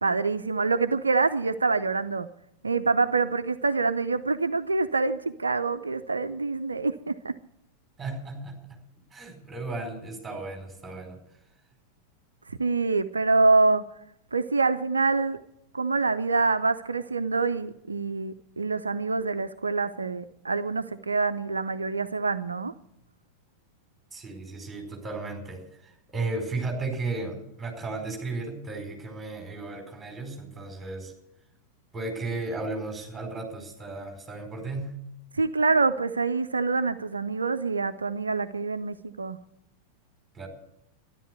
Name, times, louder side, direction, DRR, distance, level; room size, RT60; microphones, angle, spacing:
voice 1, 0.0-2.3 2.6-7.3 12.5-13.8 14.3-15.4 15.7-22.7 35.3-39.4, right 3 dB, 75° right, 11 dB, 0.5 m, -26 dB
voice 2, 8.0-8.8 9.1-11.2 24.1-31.1 31.9-34.9 40.3-40.5, right 3 dB, 15° right, 3 dB, 4.8 m, -35 dB
13.0 x 11.5 x 8.0 m, 0.79 s
figure-of-eight pair, 90°, 0 cm